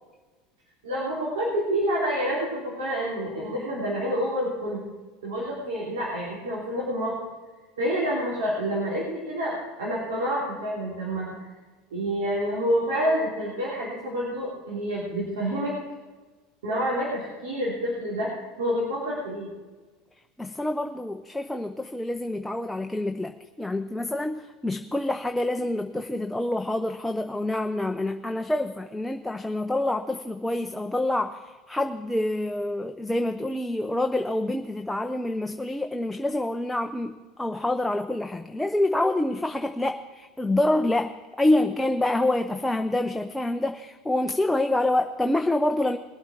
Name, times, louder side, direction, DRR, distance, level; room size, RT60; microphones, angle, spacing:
voice 1, 0.8-4.8 5.2-7.2 7.8-11.5 11.9-15.7 16.6-18.3 18.6-19.5, equal, 85° right, -6 dB, 3.8 m, -28 dB
voice 2, 20.4-46.0, left 1 dB, 5° left, 6 dB, 0.7 m, -27 dB
21.5 x 8.0 x 4.6 m, 1.3 s
hypercardioid pair, 95°, 0 cm